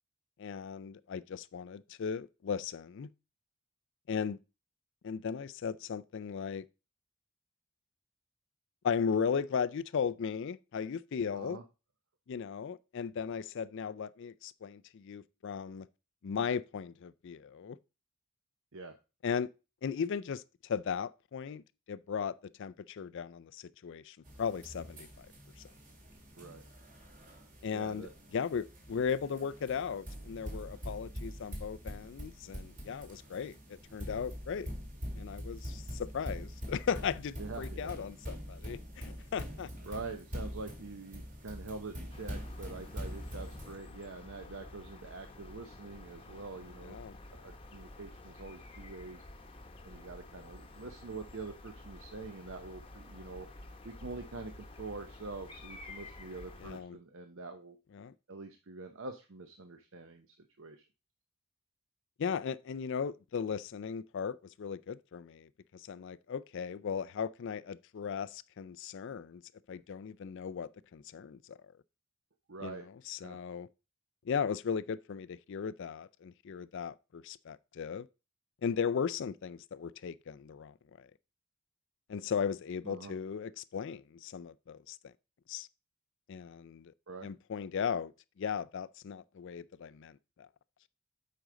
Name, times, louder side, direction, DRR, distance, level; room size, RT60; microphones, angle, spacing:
voice 1, 0.4-3.1 4.1-4.4 5.0-6.6 8.8-11.6 12.3-15.9 16.2-17.8 19.2-19.5 19.8-22.3 22.6-25.3 27.6-34.7 35.2-39.7 46.8-47.2 56.6-57.0 57.9-58.1 62.2-69.4 69.7-71.6 72.6-72.8 73.1-73.7 74.3-78.1 78.6-81.1 82.1-85.0 85.5-85.7 86.3-86.9 87.2-88.1 88.4-90.5, left 6 dB, 55° left, 0.4 m, -37 dB
sound 1, 24.2-43.7, equal, 35° right, 2.0 m, -44 dB
voice 2, 27.7-28.1 37.4-37.9 39.8-49.2 49.8-57.8 58.3-60.8 72.5-72.9 73.2-73.4 82.8-83.2 87.1-87.3, right 3 dB, 60° right, 0.8 m, -45 dB
sound 2, 42.1-56.8, left 2 dB, 25° left, 0.9 m, -50 dB
8.0 x 5.1 x 3.8 m
head